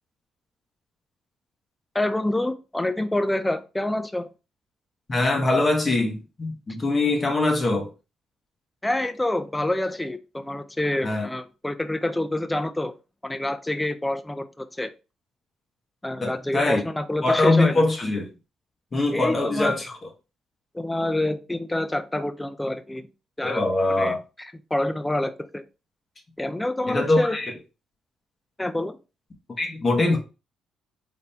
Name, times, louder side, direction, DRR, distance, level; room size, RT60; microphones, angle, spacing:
voice 1, 1.9-4.3 8.8-12.9 13.2-14.9 16.0-17.8 19.1-19.8 20.7-23.1 23.4-23.6 24.0-25.6 26.4-27.4 28.6-29.0, left 1 dB, 10° left, 0.5 m, -27 dB
voice 2, 5.1-7.9 11.0-11.3 16.2-16.8 17.2-18.3 18.9-19.8 23.4-24.2 26.8-27.5 29.6-30.2, left 2 dB, 30° left, 1.4 m, -22 dB
3.9 x 3.7 x 2.8 m
cardioid pair, 90°, 0 cm